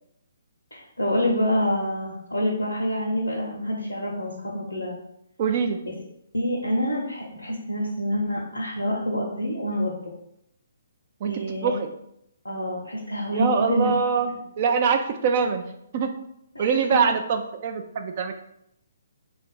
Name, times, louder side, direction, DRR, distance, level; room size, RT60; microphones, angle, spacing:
voice 1, 0.7-5.0 6.3-9.9 11.2-11.7 12.4-13.9 16.5-17.0, equal, 85° left, -3 dB, 0.8 m, -27 dB
voice 2, 5.4-5.8 11.2-11.9 13.3-16.1 16.6-18.3, right 6 dB, 40° right, 6 dB, 0.4 m, -24 dB
3.6 x 2.5 x 4.1 m, 0.77 s
figure-of-eight pair, 130°, 0 cm